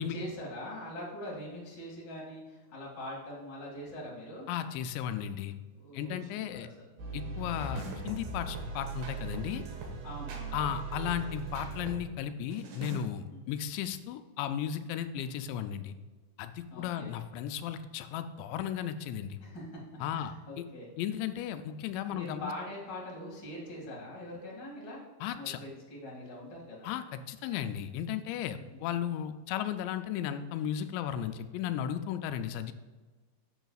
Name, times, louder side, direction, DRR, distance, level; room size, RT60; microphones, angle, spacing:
voice 1, 0.1-4.5 5.7-6.7 10.0-10.6 13.3-13.6 16.7-17.1 19.4-19.8 20.1-20.9 22.1-25.0 25.3-26.9 28.5-28.8, left 1 dB, 40° left, -4 dB, 1.6 m, -43 dB
voice 2, 4.5-5.6 5.9-6.7 7.1-9.6 10.5-16.0 16.4-19.4 20.0-20.6 21.0-22.5 25.2-25.6 26.8-32.7, left 9 dB, 85° left, 9 dB, 2.7 m, -35 dB
sound 1, 7.0-12.0 12.5-13.0, right 3 dB, 65° right, 2.7 m, -39 dB
12.0 x 7.0 x 2.4 m, 1.3 s
omnidirectional pair, 5.2 m